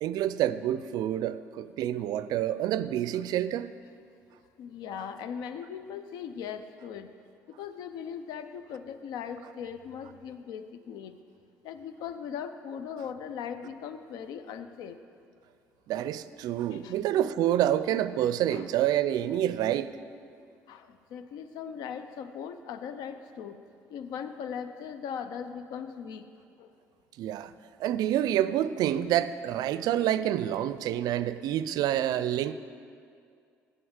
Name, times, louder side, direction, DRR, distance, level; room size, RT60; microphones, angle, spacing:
voice 1, 0.0-3.7 15.9-19.9 27.2-27.5 27.8-32.5, right 11 dB, 70° right, 14 dB, 0.4 m, -28 dB
voice 2, 4.6-7.1 7.5-11.2 11.6-15.0 16.7-17.0 18.5-18.7 20.7-23.6 23.9-26.3 26.6-26.7 31.8-32.0, left 7 dB, 75° left, 10 dB, 0.5 m, -39 dB
7.7 x 7.7 x 8.0 m, 2.3 s
hypercardioid pair, 60°, 7 cm